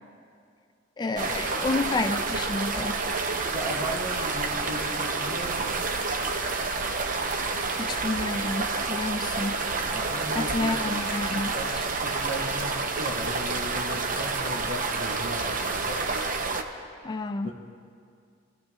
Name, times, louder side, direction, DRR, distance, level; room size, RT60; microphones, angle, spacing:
voice 1, 1.0-3.0 7.7-9.6 10.3-11.8 17.0-17.5, left 3 dB, 20° left, 8 dB, 0.4 m, -30 dB
sound 1, 1.2-16.6, right 3 dB, 45° right, 0.8 m, -29 dB
voice 2, 3.5-5.8 9.9-10.8 11.3-16.0 17.0-17.1 17.4-17.5, equal, 70° right, -3 dB, 2.5 m, -36 dB
24.5 x 14.5 x 2.4 m, 2.3 s
head